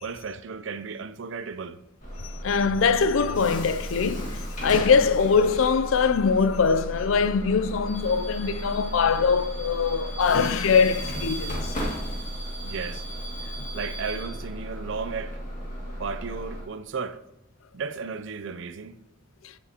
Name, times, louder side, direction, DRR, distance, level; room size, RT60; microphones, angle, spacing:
voice 1, 0.0-1.8 12.6-13.0 13.7-15.4 16.0-17.2 17.7-19.0, right 5 dB, 60° right, 0.4 m, -34 dB
Bus / Alarm, 2.0-16.6, equal, 35° left, 2.2 m, -34 dB
voice 2, 2.2-11.7 19.4-19.5, left 5 dB, 70° left, 0.4 m, -22 dB
15.0 x 7.1 x 2.9 m
head